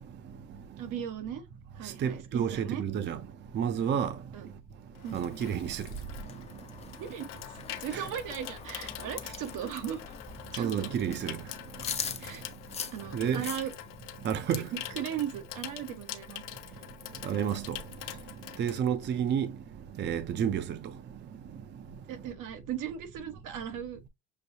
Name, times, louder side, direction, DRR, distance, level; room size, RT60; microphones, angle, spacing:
voice 1, 0.8-1.5 1.7-2.8 4.3-4.5 5.0-5.2 6.8-10.0 10.5-11.0 12.2-12.4 12.9-13.7 14.5-16.4 18.7-18.8 20.4-20.5 22.1-24.1, right 9 dB, 80° right, 1.2 m, -38 dB
voice 2, 2.0-3.2 3.5-4.1 5.1-5.9 7.9-8.0 10.6-11.4 13.1-13.5 14.2-14.6 17.2-17.8 18.6-19.5 20.0-20.8, right 8 dB, 35° right, 0.5 m, -30 dB
Water tap faucet / Sink (filling or washing), 4.4-19.5 19.8-20.1, left 13 dB, 80° left, 0.7 m, -45 dB
sound 1, 5.0-14.0, left 6 dB, 20° left, 0.4 m, -43 dB
6.4 x 2.7 x 2.6 m
cardioid pair, 140°, 31 cm